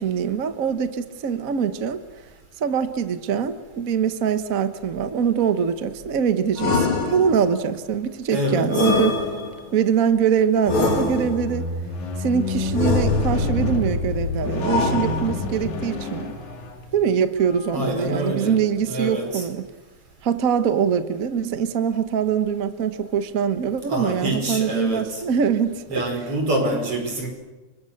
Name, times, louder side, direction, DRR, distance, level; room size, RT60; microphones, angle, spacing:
voice 1, 0.0-2.0 2.6-9.2 9.7-11.7 12.2-16.3 16.9-19.7 20.2-26.0 26.7-26.8, right 7 dB, 85° right, 10 dB, 0.7 m, -23 dB
sound 1, 6.6-7.6 8.7-9.8 10.6-11.6 12.7-13.6 14.6-15.6, left 3 dB, 40° left, 3.5 m, -24 dB
voice 2, 8.3-8.9 17.7-18.6 18.8-19.4 23.9-25.2 25.9-27.3, right 1 dB, 45° right, 3 dB, 5.9 m, -26 dB
Squeak, 10.7-17.0 17.8-17.9, left 3 dB, 70° left, 3.4 m, -27 dB
30.0 x 24.0 x 6.6 m, 1.2 s
omnidirectional pair, 3.5 m